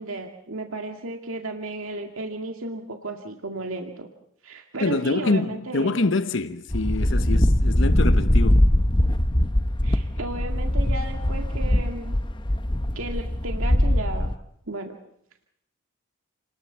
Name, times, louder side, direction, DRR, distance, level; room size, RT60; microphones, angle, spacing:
voice 1, 0.0-4.1 4.4-6.0 9.8-12.2 12.9-14.3 14.7-15.0, right 2 dB, 75° right, 2.0 m, -34 dB
voice 2, 4.8-8.7, left 2 dB, 60° left, 1.0 m, -25 dB
sound 1, 6.7-14.3, left 1 dB, 20° left, 0.9 m, -21 dB
30.0 x 20.0 x 6.9 m
head